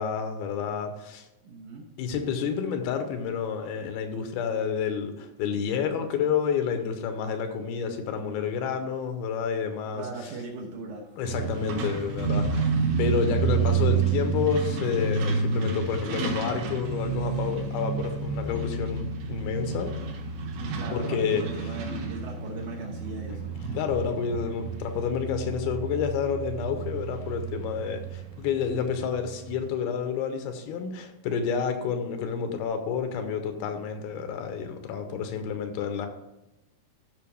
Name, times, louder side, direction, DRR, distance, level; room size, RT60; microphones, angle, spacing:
voice 1, 0.0-1.3 2.0-10.1 11.2-12.7 13.0-19.9 20.9-21.4 23.3-23.4 23.7-36.1, left 6 dB, 85° left, 6 dB, 2.8 m, -29 dB
voice 2, 1.4-1.9 9.9-11.1 20.5-23.5 31.6-31.8, right 3 dB, 65° right, -1 dB, 2.1 m, -38 dB
Truck, 11.2-29.7, right 5 dB, 85° right, 3.3 m, -30 dB
14.0 x 5.9 x 3.4 m, 0.93 s
omnidirectional pair, 4.4 m